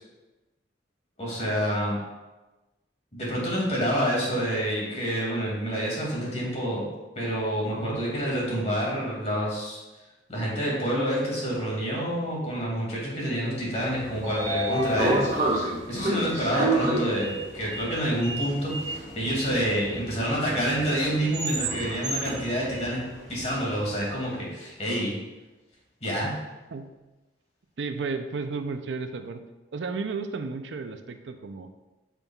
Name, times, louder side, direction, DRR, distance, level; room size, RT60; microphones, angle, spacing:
voice 1, 1.2-2.0 3.1-6.9 7.2-9.8 10.3-23.0 23.3-25.2 26.0-26.3, equal, 40° left, -4 dB, 2.3 m, -28 dB
Sliding door, 13.8-23.9, right 1 dB, 40° right, 1.6 m, -30 dB
voice 2, 27.8-29.4 29.7-31.7, right 4 dB, 85° right, 8 dB, 0.5 m, -33 dB
8.9 x 6.0 x 2.4 m, 1.1 s
head